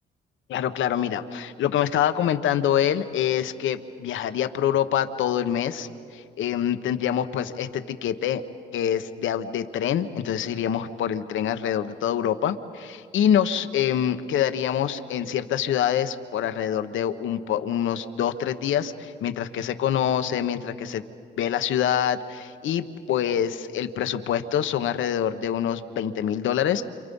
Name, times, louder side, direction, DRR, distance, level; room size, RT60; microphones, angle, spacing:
voice 1, 0.5-8.4 8.7-21.0 21.4-26.8, left 9 dB, 75° left, 10 dB, 1.1 m, -25 dB
28.5 x 27.5 x 5.5 m, 2.3 s
cardioid pair, 90°, 20 cm